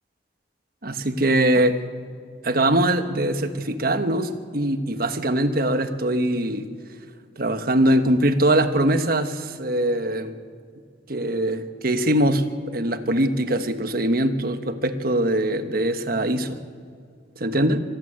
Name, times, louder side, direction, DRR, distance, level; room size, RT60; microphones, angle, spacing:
voice 1, 0.8-1.8 2.4-6.7 7.4-10.4 11.1-12.4 12.7-16.6 17.4-17.8, right 1 dB, 50° right, 9 dB, 1.3 m, -22 dB
25.5 x 13.5 x 8.9 m, 2.2 s
head